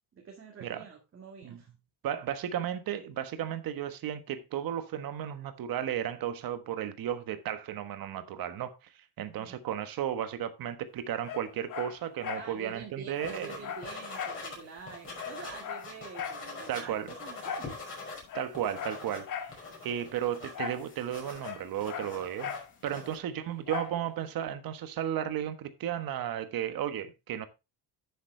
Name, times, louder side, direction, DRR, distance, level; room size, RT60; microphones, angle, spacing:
voice 1, 0.1-1.7 9.4-9.6 12.3-17.7 19.6-20.0 22.9-23.3, right 5 dB, 30° right, 1.7 m, -47 dB
voice 2, 2.0-8.7 9.2-13.7 16.7-17.1 18.3-19.5 19.8-22.5 22.8-27.5, right 10 dB, 55° right, 1.4 m, -34 dB
Dog, 11.2-12.5 12.8-12.9 13.2-14.4 14.8-14.9 15.1-16.4 17.4-17.7 18.2-19.6 20.5-20.9 21.1-22.7 23.7-24.0 24.5-24.6, left 7 dB, 50° left, 1.4 m, -38 dB
sound 1, 13.2-14.6 14.9-18.2 18.5-23.2, left 3 dB, 30° left, 5.5 m, -43 dB
10.5 x 7.3 x 3.2 m
cardioid pair, 165°, 41 cm